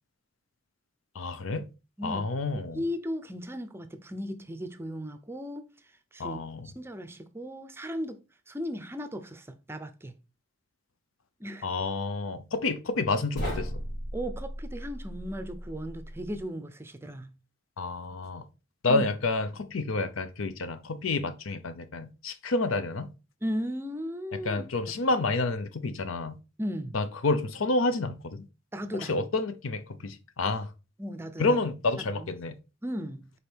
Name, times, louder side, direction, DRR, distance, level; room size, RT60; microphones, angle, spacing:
voice 1, 1.1-1.7 2.0-2.8 6.2-6.7 11.6-13.7 17.8-18.4 18.8-23.1 24.3-26.4 26.9-28.4 28.9-30.7 31.4-32.6, left 3 dB, 80° left, 0.7 m, -29 dB
voice 2, 2.7-5.7 6.1-6.4 6.6-8.2 8.5-10.1 11.4-11.7 14.1-17.4 18.9-19.0 23.4-24.7 26.6-27.0 28.7-29.1 31.0-31.6 32.0-32.3 32.8-33.3, equal, 10° right, 0.5 m, -36 dB
sound 1, 13.3-16.4, equal, 55° left, 2.9 m, -36 dB
5.1 x 4.2 x 4.5 m
head